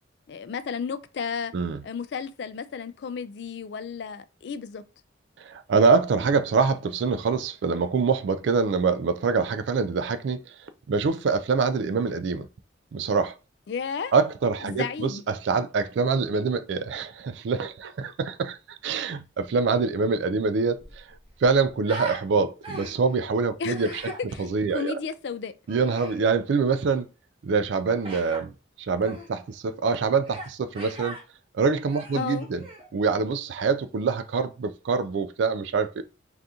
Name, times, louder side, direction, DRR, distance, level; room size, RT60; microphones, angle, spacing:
voice 1, 0.3-1.5 1.8-4.8 13.7-14.1 14.6-15.2 23.6-23.9 24.3-25.5 32.2-32.5, left 6 dB, 65° left, 0.3 m, -33 dB
voice 2, 5.4-10.4 10.9-12.5 12.9-13.3 14.1-21.0 21.4-24.0 24.4-24.9 25.7-27.1 27.4-28.5 28.8-31.2 31.5-32.6 32.9-36.0, right 4 dB, 75° right, 0.3 m, -25 dB
Human voice, 20.7-22.2 22.6-23.1 23.7-24.2 25.7-26.2 28.0-28.4 29.0-29.3 30.2-30.5 30.7-31.2 31.8-32.9, right 1 dB, 30° right, 0.9 m, -39 dB
2.7 x 2.5 x 3.5 m
head